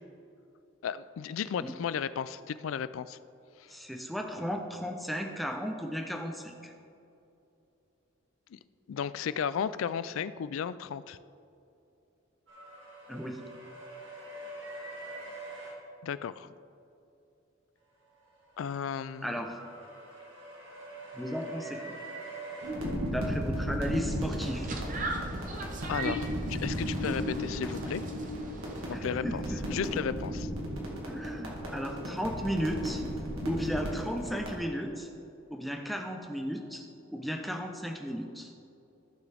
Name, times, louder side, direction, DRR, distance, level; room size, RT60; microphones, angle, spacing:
voice 1, 0.8-3.2 8.5-8.6 8.9-11.2 16.0-16.5 18.6-19.4 25.9-28.0 28.9-29.4 29.7-30.5, left 7 dB, 75° left, 15 dB, 0.3 m, -34 dB
voice 2, 3.7-6.7 13.1-13.4 19.2-19.6 21.1-22.0 23.0-24.7 28.9-29.8 31.1-33.0 33.4-35.1 35.5-38.5, equal, ahead, 2 dB, 0.6 m, -35 dB
sound 1, 12.5-15.7 18.1-23.6, right 2 dB, 60° right, 2.0 m, -45 dB
sound 2, 22.6-34.6, equal, 90° right, 2.0 m, -35 dB
sound 3, 24.1-28.9, right 2 dB, 40° right, 0.8 m, -41 dB
14.5 x 6.1 x 3.4 m, 2.8 s
head